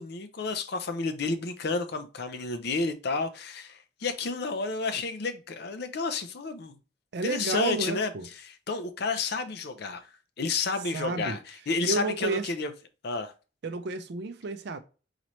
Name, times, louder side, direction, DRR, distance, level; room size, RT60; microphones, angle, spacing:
voice 1, 0.0-6.8 7.2-10.0 10.4-12.7 13.0-13.3, left 3 dB, 55° left, 0.5 m, -31 dB
voice 2, 7.1-8.3 10.9-11.4 11.9-12.5 13.6-14.8, right 3 dB, 55° right, 0.4 m, -31 dB
4.0 x 3.1 x 3.0 m
head